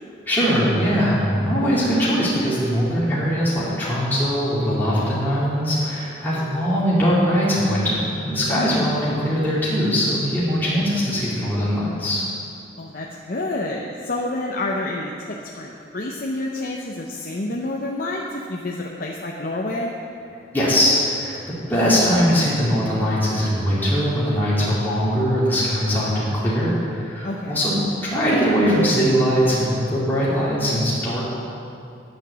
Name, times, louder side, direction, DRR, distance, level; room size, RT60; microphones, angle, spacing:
voice 1, 0.3-12.2 20.5-27.7 28.0-31.2, equal, 10° left, -9 dB, 2.3 m, -21 dB
voice 2, 12.8-19.9 27.2-27.7, left 2 dB, 50° left, -2 dB, 0.7 m, -28 dB
10.5 x 6.2 x 6.8 m, 2.6 s
head